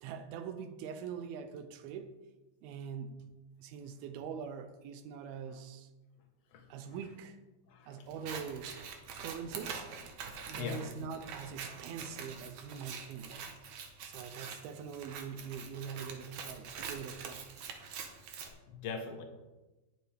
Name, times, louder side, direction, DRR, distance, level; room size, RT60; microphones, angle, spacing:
voice 1, 0.0-2.1 2.6-3.3 3.6-5.9 6.7-7.4 7.9-8.7 9.2-9.9 10.5-13.3 14.0-17.4, right 6 dB, 85° right, 2.6 m, -43 dB
voice 2, 6.5-7.0 7.7-8.1 10.5-10.9 18.1-18.2 18.5-19.2, left 5 dB, 55° left, 2.0 m, -42 dB
Scissors, 8.1-18.5, right 6 dB, 65° right, 2.3 m, -45 dB
19.0 x 7.6 x 3.5 m
omnidirectional pair, 4.3 m